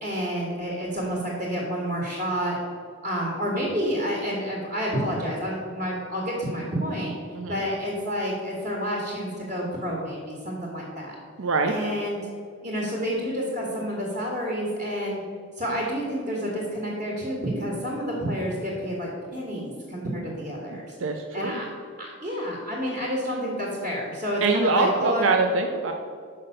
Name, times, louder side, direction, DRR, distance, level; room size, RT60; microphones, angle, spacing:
voice 1, 0.0-2.6 3.0-7.1 7.5-11.1 11.7-12.2 12.6-15.2 15.6-20.9 21.3-21.7 22.0-25.3, equal, 40° right, -4 dB, 1.6 m, -29 dB
voice 2, 11.4-11.7 21.0-21.6 24.4-25.9, right 3 dB, 80° right, 4 dB, 0.6 m, -23 dB
5.8 x 5.4 x 6.6 m, 2.1 s
head